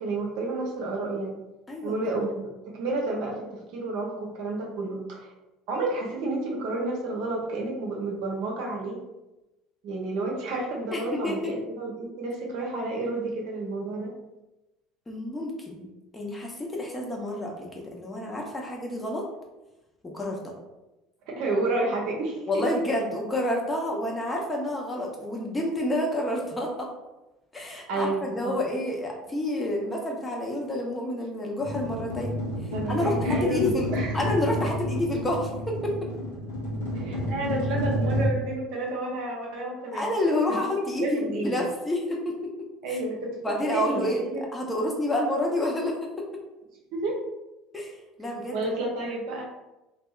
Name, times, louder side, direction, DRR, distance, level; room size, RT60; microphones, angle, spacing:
voice 1, 0.0-1.4 1.8-5.3 5.7-9.0 9.8-14.1 21.3-22.6 27.9-28.6 32.7-34.1 36.9-40.0 41.0-41.6 42.8-43.4 43.7-44.4 46.9-47.1 48.5-49.4, right 2 dB, 65° right, -1 dB, 0.6 m, -30 dB
voice 2, 1.7-2.0 10.9-11.5 15.1-15.9 16.1-19.3 20.0-20.5 22.5-26.9 27.5-33.9 34.1-36.1 39.9-43.0 43.4-46.3 47.7-48.6, left 1 dB, 20° left, -1 dB, 0.7 m, -29 dB
sound 1, 31.6-38.3, equal, 80° left, 0.7 m, -29 dB
2.6 x 2.3 x 2.3 m, 1.0 s
hypercardioid pair, 70°, 0 cm